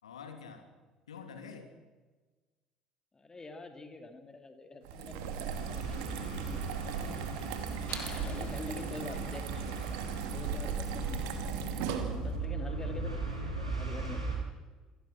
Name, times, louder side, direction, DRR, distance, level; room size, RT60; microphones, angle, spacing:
voice 1, 0.0-0.7 1.1-1.7 7.9-8.4 8.8-9.3 10.9-11.3, left 6 dB, 75° left, 6 dB, 2.8 m, -48 dB
voice 2, 3.1-6.6 7.0-7.3 8.2-9.6 10.2-11.2 12.2-14.5, left 3 dB, 20° left, 6 dB, 3.1 m, -46 dB
sound 1, 4.8-12.4, right 6 dB, 60° right, 2.5 m, -37 dB
sound 2, 5.5-14.4, right 3 dB, 85° right, 6.1 m, -38 dB
sound 3, 7.9-9.6, left 7 dB, 40° left, 2.3 m, -50 dB
28.0 x 16.5 x 6.2 m, 1.3 s
figure-of-eight pair, 60°, 3 cm